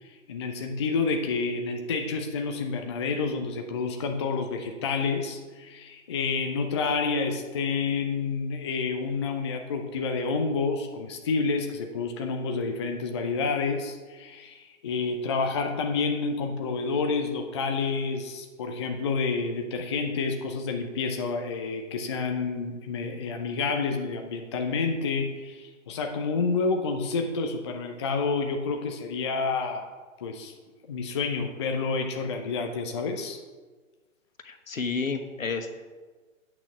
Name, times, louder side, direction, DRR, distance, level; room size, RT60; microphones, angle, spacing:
voice 1, 0.0-29.9 30.2-30.5 30.9-33.4, left 4 dB, 20° left, 4 dB, 0.5 m, -29 dB
voice 2, 34.4-35.7, left 4 dB, 75° left, 7 dB, 1.3 m, -30 dB
8.8 x 6.4 x 5.8 m, 1.4 s
figure-of-eight pair, 130°, 40 cm